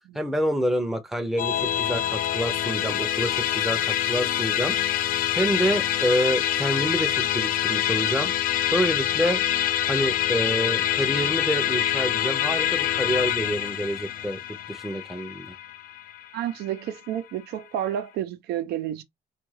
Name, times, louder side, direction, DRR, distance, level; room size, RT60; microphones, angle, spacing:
voice 1, 0.1-4.8 5.4-8.3 8.7-9.4 9.9-14.4 14.7-15.5, equal, ahead, 0.6 m, -27 dB
Musical instrument, 1.4-16.9, left 11 dB, 55° left, 0.5 m, -26 dB
voice 2, 16.3-19.0, right 11 dB, 75° right, 0.7 m, -30 dB
3.5 x 2.4 x 3.1 m
cardioid pair, 110°, 17 cm